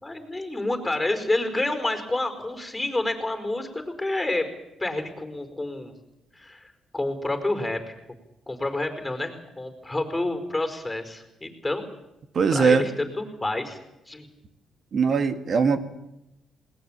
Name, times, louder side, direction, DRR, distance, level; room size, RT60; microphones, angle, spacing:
voice 1, 0.0-4.5 4.8-5.9 6.3-7.8 8.5-11.8 12.5-13.8 14.1-14.3, left 2 dB, 10° left, 7 dB, 4.9 m, -29 dB
voice 2, 12.3-12.9 14.9-15.8, right 5 dB, 50° right, 11 dB, 1.8 m, -20 dB
20.5 x 19.0 x 8.9 m, 0.87 s
cardioid pair, 90°, 0 cm